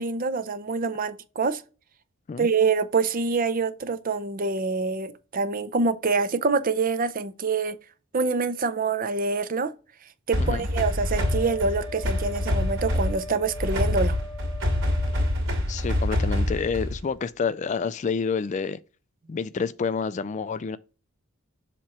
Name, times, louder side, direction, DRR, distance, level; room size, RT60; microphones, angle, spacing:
voice 1, 0.0-1.6 2.4-7.8 8.1-9.7 10.3-14.2, right 4 dB, 40° right, 0.5 m, -26 dB
sound 1, 10.3-17.1, left 1 dB, 65° right, 2.6 m, -26 dB
Wind instrument woodwind instrument, 11.1-15.4, left 2 dB, 5° right, 1.5 m, -41 dB
voice 2, 15.7-18.8 19.3-20.8, left 5 dB, 35° left, 0.3 m, -28 dB
7.3 x 3.0 x 4.6 m
head